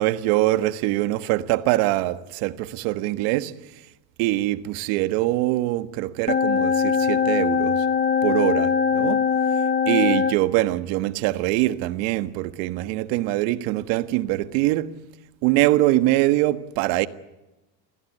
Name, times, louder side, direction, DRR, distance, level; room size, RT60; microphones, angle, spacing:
voice 1, 0.0-3.5 4.2-7.8 8.2-9.2 9.9-14.9 15.4-17.1, right 16 dB, 70° right, 1.6 m, -23 dB
sound 1, 6.3-10.4, left 6 dB, 20° left, 1.2 m, -21 dB
29.0 x 16.0 x 9.8 m
supercardioid pair, 115°, 49 cm